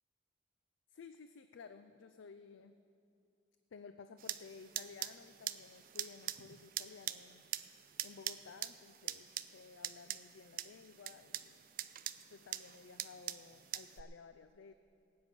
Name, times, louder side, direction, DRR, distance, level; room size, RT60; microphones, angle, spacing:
voice 1, 0.9-2.7 3.7-7.4 8.0-11.6 12.3-14.7, left 5 dB, 80° left, 10 dB, 0.4 m, -55 dB
sound 1, 4.2-14.0, right 13 dB, 50° right, 0.4 m, -44 dB
18.0 x 9.0 x 5.2 m, 2.6 s
head